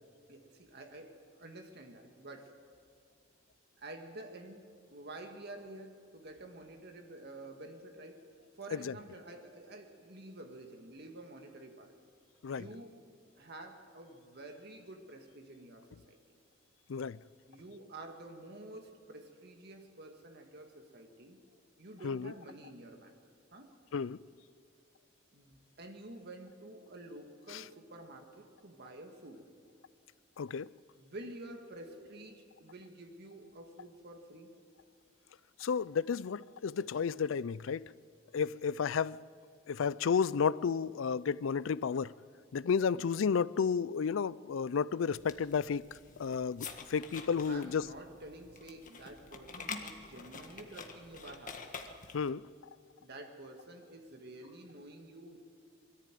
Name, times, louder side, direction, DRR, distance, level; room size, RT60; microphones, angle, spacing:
voice 1, 0.3-2.6 3.8-8.2 8.5-11.9 12.5-13.0 13.4-16.2 17.5-21.4 21.8-23.2 23.5-23.7 25.3-29.5 31.0-34.5 42.9-43.1 47.5-51.6 53.0-55.4, right 2 dB, 55° right, 2.0 m, -49 dB
voice 2, 30.4-30.7 35.6-37.9 38.3-39.2 39.7-42.1 42.5-45.9 46.2-47.9 52.1-52.5, left 6 dB, 75° left, 0.4 m, -32 dB
sound 1, 45.1-52.3, left 4 dB, 40° left, 1.6 m, -47 dB
22.0 x 14.0 x 9.2 m
head